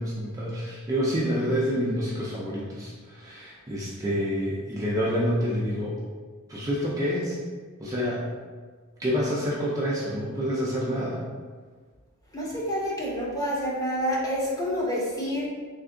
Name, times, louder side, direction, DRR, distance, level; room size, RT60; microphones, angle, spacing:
voice 1, 0.0-6.0 6.5-7.4 7.8-8.3 9.0-11.2, equal, 15° right, -6 dB, 0.4 m, -28 dB
voice 2, 12.3-15.5, equal, 15° left, -5 dB, 0.8 m, -28 dB
3.4 x 2.5 x 3.7 m, 1.5 s
head